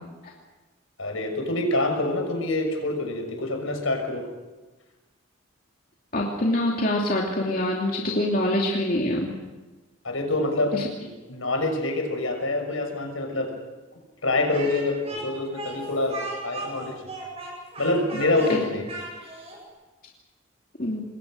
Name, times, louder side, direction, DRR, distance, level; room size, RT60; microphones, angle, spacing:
voice 1, 1.0-4.3 10.0-13.5 14.2-17.0 17.8-18.9, left 2 dB, 75° left, 3 dB, 6.3 m, -26 dB
voice 2, 6.1-9.3 10.7-10.8 18.1-18.6 20.8-21.0, left 1 dB, 45° left, -2 dB, 2.8 m, -25 dB
Speech, 14.5-19.6, right 2 dB, 30° right, 7.9 m, -37 dB
27.5 x 21.5 x 6.5 m, 1.2 s
head